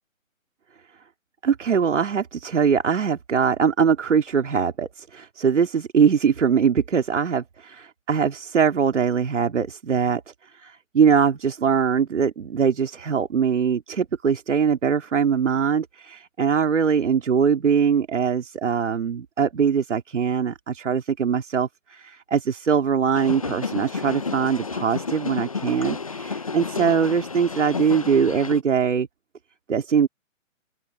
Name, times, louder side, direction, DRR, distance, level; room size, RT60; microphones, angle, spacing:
voice 1, 1.4-29.1 29.7-30.1, right 6 dB, 60° right, 2.6 m, -22 dB
sound 1, 23.1-28.6, left 4 dB, 25° left, 0.6 m, -31 dB
open air
hypercardioid pair, 165°, 40 cm